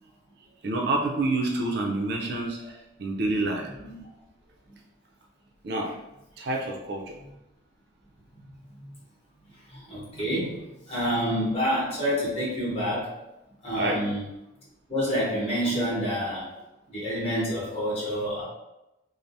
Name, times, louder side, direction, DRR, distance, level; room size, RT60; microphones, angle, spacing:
voice 1, 0.6-3.7 5.6-5.9 6.4-7.2 13.7-14.0, right 2 dB, 55° right, 0 dB, 0.4 m, -28 dB
voice 2, 9.7-13.1 13.6-14.2 14.9-16.5 16.9-18.4, equal, 30° left, -7 dB, 1.2 m, -28 dB
3.2 x 2.0 x 2.6 m, 0.92 s
head